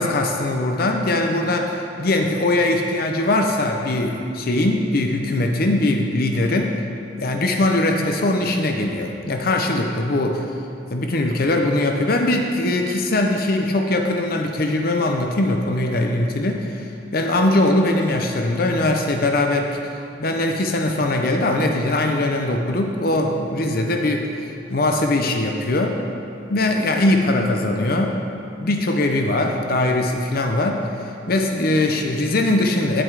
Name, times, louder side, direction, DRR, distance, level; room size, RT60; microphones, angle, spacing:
voice 1, 0.0-6.8 7.2-10.5 10.9-16.8 17.1-19.8 20.2-24.3 24.7-26.0 26.5-28.2 28.6-30.9 31.3-33.0, left 2 dB, 55° left, 3 dB, 0.7 m, -21 dB
10.0 x 7.7 x 4.9 m, 2.7 s
head